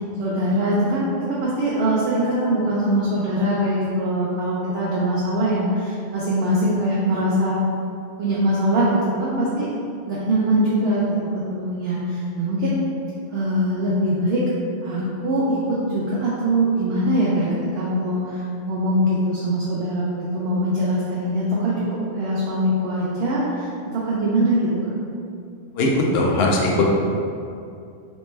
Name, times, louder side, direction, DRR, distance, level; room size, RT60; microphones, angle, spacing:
voice 1, 0.2-7.6 8.2-9.7 10.1-11.0 11.3-12.8 13.3-14.4 14.8-24.9, right 1 dB, 65° right, -6 dB, 0.8 m, -22 dB
voice 2, 25.8-26.9, left 2 dB, 65° left, -1 dB, 0.8 m, -19 dB
3.3 x 3.1 x 3.2 m, 2.5 s
omnidirectional pair, 1.3 m